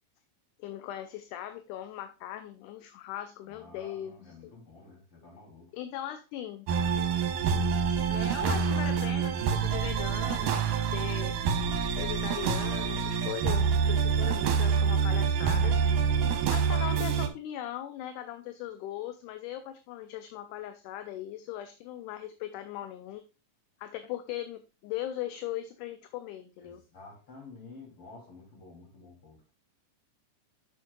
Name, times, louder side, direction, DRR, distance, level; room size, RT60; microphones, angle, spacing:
voice 1, 0.6-4.5 5.7-6.7 8.1-11.4 12.0-15.8 16.5-23.2 23.8-26.8, left 12 dB, 80° left, 2.1 m, -39 dB
voice 2, 3.5-5.7 16.4-16.7 26.6-29.5, left 3 dB, 40° left, 4.2 m, -51 dB
sound 1, 6.7-17.3, right 6 dB, 80° right, 2.7 m, -27 dB
7.8 x 7.3 x 2.3 m
omnidirectional pair, 3.8 m